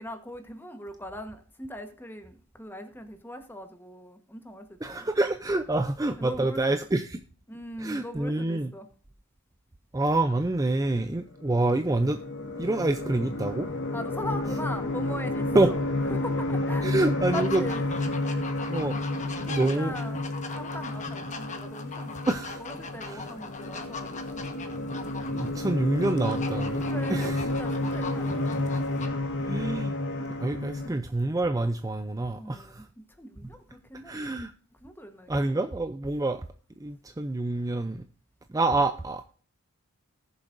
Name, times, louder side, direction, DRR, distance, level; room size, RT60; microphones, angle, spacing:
voice 1, 0.0-5.1 6.2-6.8 7.5-8.9 13.9-15.8 16.1-16.9 17.3-17.9 19.4-20.2 20.5-22.2 22.6-24.4 26.8-28.6 30.7-31.0 32.3-34.3 34.8-35.4, equal, 10° left, 1.2 m, -40 dB
voice 2, 4.8-7.2 7.8-8.7 9.9-12.2 12.6-13.7 15.5-15.7 16.8-17.6 18.7-19.0 19.4-19.9 22.3-22.6 23.0-23.2 25.3-26.8 27.1-27.4 29.4-29.9 30.4-32.8 34.0-34.5 35.3-36.4 36.8-38.0 38.5-39.3, right 2 dB, 15° right, 0.5 m, -27 dB
sound 1, 11.4-30.9, left 2 dB, 55° left, 1.7 m, -31 dB
sound 2, 17.3-29.1, left 4 dB, 35° left, 1.3 m, -40 dB
19.5 x 7.2 x 2.6 m
head